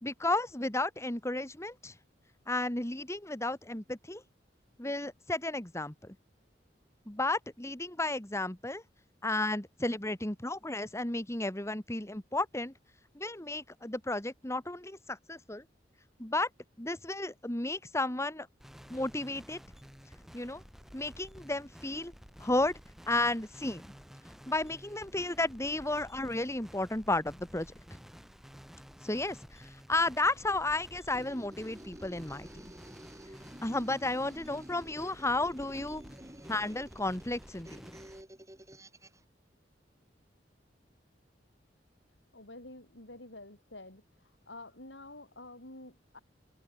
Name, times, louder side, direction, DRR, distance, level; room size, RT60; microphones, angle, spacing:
voice 1, 0.0-1.9 2.5-4.2 4.8-6.2 7.1-8.8 9.2-12.7 13.1-15.6 16.2-16.5 16.8-18.5 18.9-19.6 20.3-20.6 20.9-22.1 22.4-22.8 23.1-23.8 24.5-27.7 29.0-32.7 33.6-36.0 36.5-37.8, left 2 dB, 15° left, 1.9 m, -33 dB
sound 1, 18.6-38.2, equal, ahead, 7.0 m, -53 dB
sound 2, 31.0-39.2, right 1 dB, 20° right, 3.1 m, -51 dB
voice 2, 42.3-44.0 44.5-46.2, left 2 dB, 75° left, 7.9 m, -48 dB
open air
head